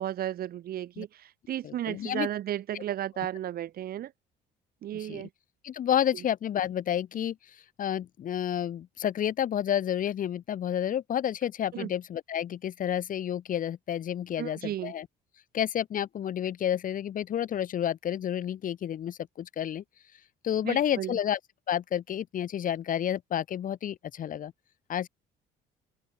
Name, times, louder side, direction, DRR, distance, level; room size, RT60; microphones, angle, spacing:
voice 1, 0.0-4.1 4.8-5.3 11.7-11.9 14.4-14.9 20.6-21.2, right 12 dB, 60° right, 4.3 m, -34 dB
voice 2, 1.6-2.3 2.7-2.8 4.9-5.2 5.6-7.4 7.8-15.1 15.5-19.8 20.4-21.4 21.7-24.5 24.9-25.1, left 10 dB, 55° left, 3.3 m, -30 dB
open air
cardioid pair, 110°, 17 cm